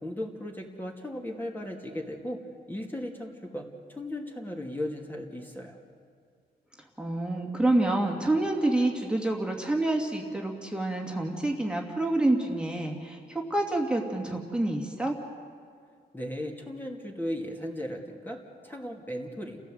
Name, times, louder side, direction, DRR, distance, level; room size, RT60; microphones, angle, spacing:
voice 1, 0.0-2.4 2.7-5.8 16.1-18.4 18.6-19.6, left 1 dB, 10° left, 0 dB, 2.5 m, -36 dB
voice 2, 7.0-15.2, right 2 dB, 5° right, 0 dB, 2.4 m, -27 dB
30.0 x 15.5 x 7.9 m, 2.2 s
cardioid pair, 105°, 18 cm